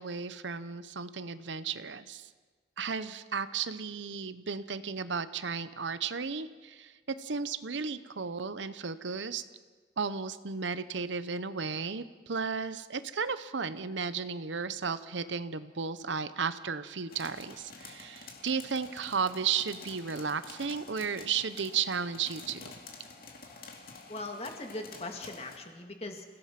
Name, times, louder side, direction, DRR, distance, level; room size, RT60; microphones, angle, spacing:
voice 1, 0.0-2.3 2.8-6.9 7.2-9.4 10.0-22.7, right 5 dB, 80° right, 13 dB, 0.9 m, -34 dB
sound 1, 17.1-25.6, left 4 dB, 50° left, 2.5 m, -49 dB
voice 2, 24.1-26.2, left 2 dB, 35° left, 4 dB, 2.1 m, -40 dB
28.5 x 16.5 x 5.9 m, 1.4 s
head